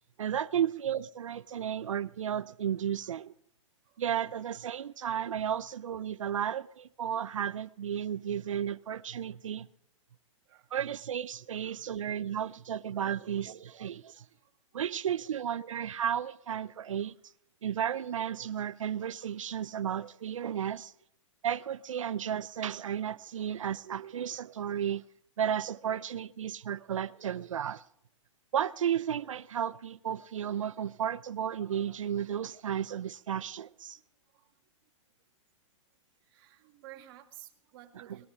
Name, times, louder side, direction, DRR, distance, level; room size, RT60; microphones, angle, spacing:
voice 1, 0.2-3.3 4.0-9.7 10.7-14.2 14.7-17.1 17.6-20.9 21.4-25.0 25.4-27.8 28.5-34.0 37.9-38.2, right 9 dB, 90° right, 0.6 m, -33 dB
voice 2, 14.2-14.5 15.3-15.4 17.0-17.1 23.1-23.2 34.3-34.5 36.2-38.3, right 13 dB, 45° right, 2.3 m, -54 dB
19.0 x 13.0 x 5.1 m
hypercardioid pair, 145°, 16 cm